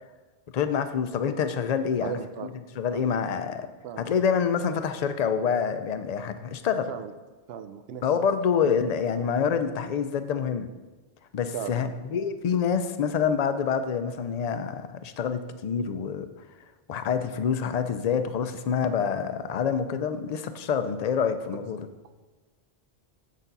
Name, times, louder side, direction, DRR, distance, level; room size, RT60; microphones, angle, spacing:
voice 1, 0.5-2.1 2.4-2.5 2.8-3.7 4.0-6.9 8.0-10.7 11.3-16.3 16.9-21.8, left 7 dB, 50° left, 10 dB, 0.5 m, -27 dB
voice 2, 2.0-2.5 2.9-3.1 3.8-4.1 6.9-7.1 7.5-8.1 11.5-12.2, right 9 dB, 75° right, 9 dB, 0.8 m, -37 dB
7.2 x 6.6 x 4.0 m, 1.2 s
omnidirectional pair, 1.1 m